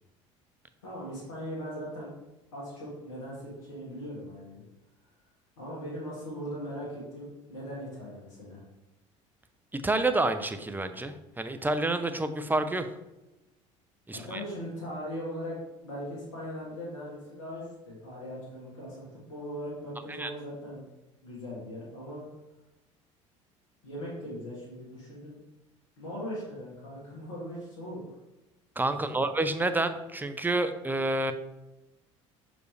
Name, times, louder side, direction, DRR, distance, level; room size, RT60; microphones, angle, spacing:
voice 1, 0.8-2.1 2.5-4.6 5.6-8.6 14.1-15.6 15.8-20.8 21.2-22.2 23.8-25.4 26.0-28.1 29.1-29.2, equal, 85° left, -6 dB, 1.8 m, -39 dB
voice 2, 9.7-12.9 14.1-14.4 20.1-20.3 28.8-31.3, right 2 dB, 10° right, 9 dB, 0.6 m, -29 dB
6.2 x 5.0 x 3.3 m, 0.98 s
hypercardioid pair, 65°, 16 cm